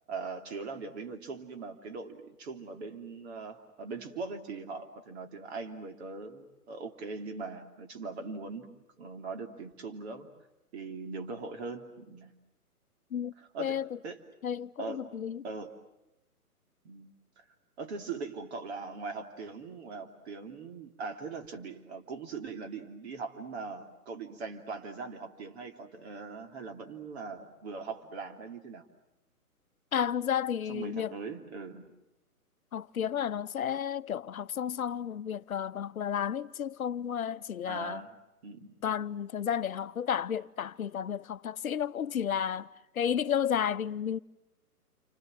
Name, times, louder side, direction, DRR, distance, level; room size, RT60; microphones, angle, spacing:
voice 1, 0.1-8.7 9.0-10.3 10.7-12.3 13.5-13.8 14.0-14.2 14.8-15.1 15.4-15.7 16.8-17.4 17.8-28.9 30.7-31.8 37.7-38.2 38.4-38.7, right 4 dB, 45° right, 3.2 m, -41 dB
voice 2, 13.6-14.0 14.4-15.4 29.9-31.2 32.7-38.0 38.8-42.7 42.9-44.2, left 8 dB, 65° left, 0.9 m, -32 dB
29.5 x 25.5 x 7.6 m
figure-of-eight pair, 140°, 46 cm